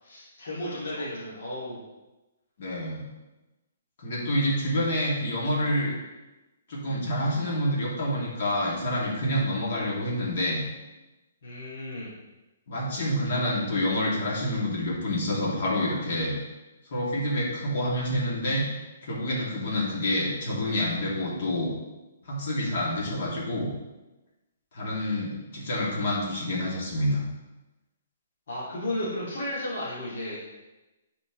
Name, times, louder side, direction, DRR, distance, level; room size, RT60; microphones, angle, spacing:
voice 1, 0.0-1.8 11.4-12.1 28.5-30.4, left 1 dB, 70° left, -9 dB, 2.2 m, -34 dB
voice 2, 2.6-3.0 4.0-6.0 6.7-10.6 12.7-16.3 16.9-18.6 19.0-21.7 22.2-23.7 24.7-27.2, left 1 dB, 50° left, -4 dB, 2.3 m, -27 dB
9.5 x 4.5 x 3.1 m, 1.1 s
hypercardioid pair, 160°, 0 cm